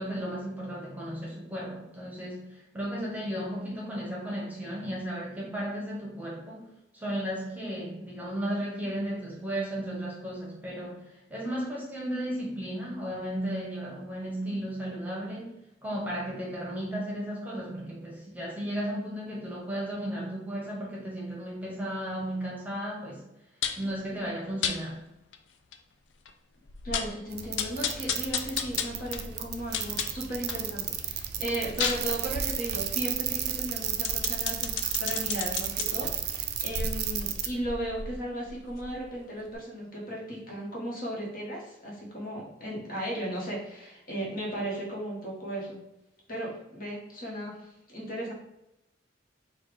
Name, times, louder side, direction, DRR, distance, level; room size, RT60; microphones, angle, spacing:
voice 1, 0.0-2.5 2.7-11.0 11.3-23.2 23.8-25.0, equal, 10° right, -4 dB, 1.0 m, -34 dB
sound 1, 23.6-23.9 24.6-24.8 25.3-25.4 25.7-25.8 26.3-26.4 26.7-27.2 27.6-30.7 31.1-35.9 36.5-39.2 39.5-39.6, left 7 dB, 75° left, 0.4 m, -34 dB
voice 2, 26.8-45.8 46.3-48.3, right 1 dB, 50° left, -3 dB, 1.4 m, -36 dB
sound 2, 27.3-37.5, right 9 dB, 60° right, 0.4 m, -33 dB
4.4 x 2.4 x 4.8 m, 0.89 s
head